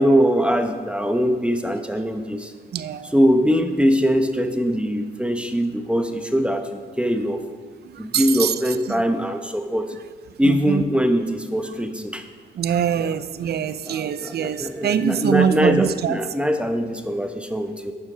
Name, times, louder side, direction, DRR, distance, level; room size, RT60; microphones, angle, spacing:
voice 1, 0.0-2.5 3.1-7.4 8.0-9.9 10.4-12.2 13.0-13.2 13.9-17.9, equal, 5° right, 7 dB, 0.9 m, -22 dB
voice 2, 2.7-3.1 7.8-9.0 10.4-10.8 12.5-16.2, right 8 dB, 55° right, 14 dB, 0.6 m, -24 dB
11.5 x 7.2 x 5.0 m, 1.5 s
cardioid pair, 90°, 20 cm